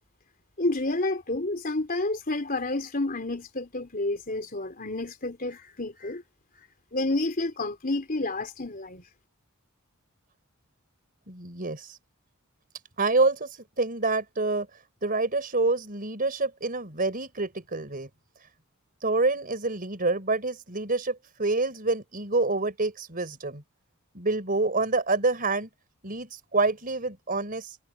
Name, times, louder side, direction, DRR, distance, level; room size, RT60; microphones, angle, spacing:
voice 1, 0.6-6.2 6.9-9.0, left 2 dB, 40° left, 3.7 m, -29 dB
voice 2, 11.3-12.0 13.0-14.7 15.0-18.1 19.0-23.6 24.1-25.7 26.0-27.8, right 3 dB, 40° right, 4.5 m, -27 dB
head